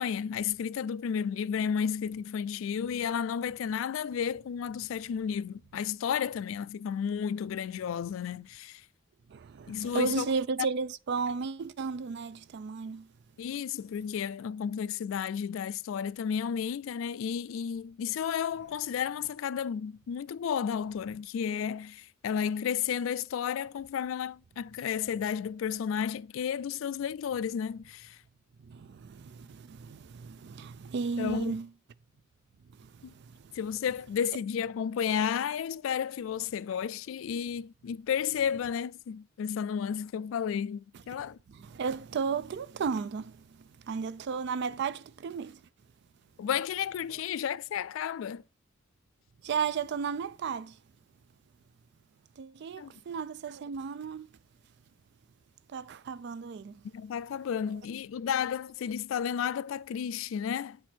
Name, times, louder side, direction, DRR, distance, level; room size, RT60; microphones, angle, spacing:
voice 1, 0.0-8.8 9.7-10.3 13.4-28.2 31.2-31.5 33.0-33.1 33.5-41.4 46.4-48.4 52.8-52.9 56.9-60.8, left 8 dB, 75° left, 0.3 m, -32 dB
voice 2, 9.3-13.1 28.6-31.7 32.8-33.6 41.1-41.2 41.5-45.6 49.4-50.8 52.4-54.3 55.7-56.8, right 5 dB, 60° right, 0.4 m, -34 dB
8.0 x 4.4 x 4.3 m
head